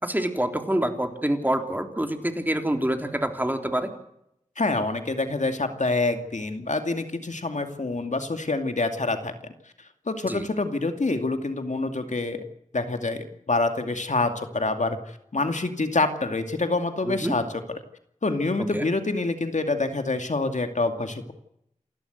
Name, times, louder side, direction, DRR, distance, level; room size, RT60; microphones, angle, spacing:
voice 1, 0.0-3.9 10.2-10.5 17.0-17.3 18.7-18.9, right 1 dB, 15° right, 5 dB, 3.7 m, -26 dB
voice 2, 4.6-9.3 10.1-12.4 12.7-15.0 15.3-17.4 18.2-21.3, left 3 dB, 65° left, 7 dB, 2.5 m, -26 dB
28.5 x 12.5 x 8.1 m, 0.76 s
cardioid pair, 40°, 14 cm